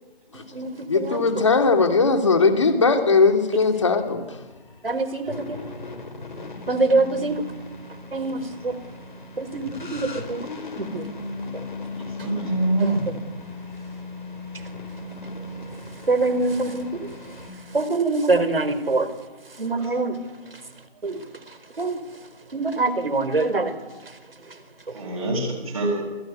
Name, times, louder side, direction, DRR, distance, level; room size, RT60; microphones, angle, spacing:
voice 1, 0.3-1.4 3.5-3.6 4.8-5.6 6.7-7.5 8.1-8.8 9.4-10.5 10.8-11.1 11.5-11.9 12.2-12.3 12.8-13.1 14.5-14.7 15.7-20.6 21.0-25.0, right 3 dB, 65° right, 4.5 m, -26 dB
voice 2, 0.9-4.2, left 4 dB, 30° left, 2.8 m, -19 dB
sound 1, 3.7-17.5, left 2 dB, 50° left, 5.2 m, -37 dB
voice 3, 12.2-13.0 24.9-26.0, right 2 dB, 35° right, 7.9 m, -24 dB
28.0 x 19.5 x 9.7 m
figure-of-eight pair, 175°, 30 cm